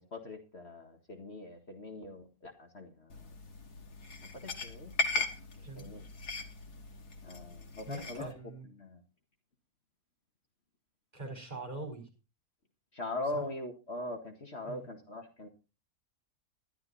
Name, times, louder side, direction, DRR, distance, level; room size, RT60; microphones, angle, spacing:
voice 1, 0.1-3.3 4.4-5.3 5.6-6.0 7.2-8.3 8.8-9.0 12.9-15.5, left 2 dB, 45° left, 3 dB, 2.0 m, -41 dB
sound 1, 3.1-8.3, left 3 dB, 85° left, 2.3 m, -38 dB
voice 2, 7.9-8.7 11.1-12.1 13.3-13.4 14.7-14.9, right 2 dB, 25° right, 3 dB, 4.5 m, -43 dB
12.5 x 12.0 x 4.1 m, 0.31 s
omnidirectional pair, 1.7 m